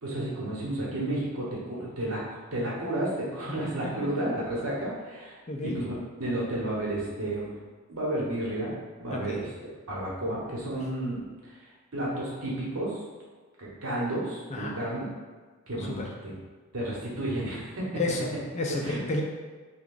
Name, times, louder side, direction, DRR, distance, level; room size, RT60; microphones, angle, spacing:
voice 1, 0.0-2.2 2.5-5.4 5.6-5.9 6.2-7.5 7.9-8.7 9.0-9.5 9.9-11.6 11.9-13.0 13.6-15.1 15.7-16.3 16.7-17.9 18.8-19.0, right 1 dB, 70° right, -5 dB, 1.1 m, -31 dB
voice 2, 5.5-5.8 9.1-9.4 14.5-14.7 15.8-16.1 18.0-19.2, left 2 dB, 30° left, 0 dB, 0.3 m, -31 dB
3.4 x 2.3 x 3.7 m, 1.4 s
head